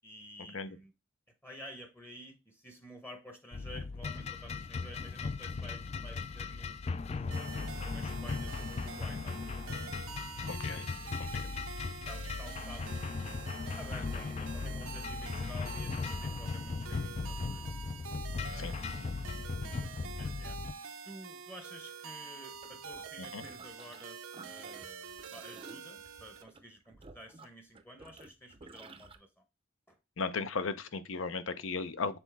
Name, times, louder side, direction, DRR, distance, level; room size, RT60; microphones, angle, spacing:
voice 1, 0.0-0.9 1.4-9.6 10.7-11.6 12.1-12.9 13.8-17.6 18.4-19.0 20.1-20.6 21.1-24.2 24.4-29.4 29.9-30.0, equal, 10° left, 0.8 m, -51 dB
sound 1, 3.5-20.7, left 4 dB, 30° left, 0.3 m, -38 dB
sound 2, 7.3-26.4, right 6 dB, 80° right, 0.7 m, -46 dB
voice 2, 10.5-10.9 11.2-11.4 18.5-18.7 23.3-23.4 30.2-32.2, left 4 dB, 65° left, 0.7 m, -36 dB
sound 3, 22.5-24.0 24.3-29.2, right 3 dB, 25° right, 0.6 m, -53 dB
6.9 x 4.1 x 3.4 m
head